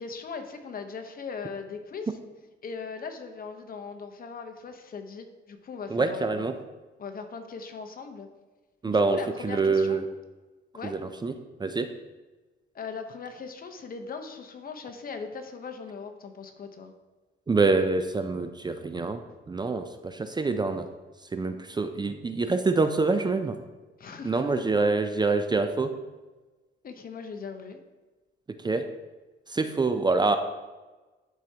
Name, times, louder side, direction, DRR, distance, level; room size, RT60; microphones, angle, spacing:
voice 1, 0.0-2.2 2.6-6.4 7.0-8.3 8.8-10.0 10.7-11.1 12.7-16.9 24.0-24.8 26.8-27.8, left 5 dB, 45° left, 6 dB, 0.9 m, -39 dB
voice 2, 5.9-6.5 8.8-9.2 9.4-10.0 11.2-11.3 11.6-11.9 17.5-19.2 19.5-20.9 21.3-23.6 24.2-25.9 28.6-28.9 29.5-30.4, right 3 dB, 20° right, 8 dB, 0.5 m, -25 dB
12.0 x 4.7 x 2.9 m, 1.2 s
cardioid pair, 90°, 20 cm